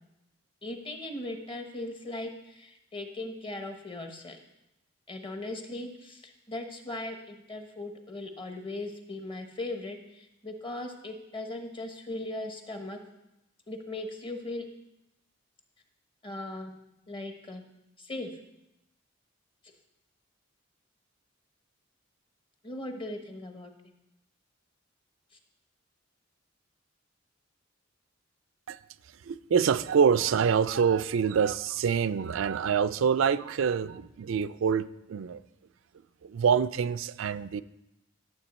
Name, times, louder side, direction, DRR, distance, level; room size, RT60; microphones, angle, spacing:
voice 1, 0.6-4.4 5.1-13.0 13.7-14.6 16.2-16.7 17.1-17.6 18.0-18.4 22.6-23.7, left 2 dB, 25° left, 5 dB, 1.1 m, -38 dB
voice 2, 29.2-35.4 36.2-37.6, right 7 dB, 75° right, 12 dB, 0.4 m, -26 dB
12.0 x 7.4 x 4.2 m, 0.89 s
head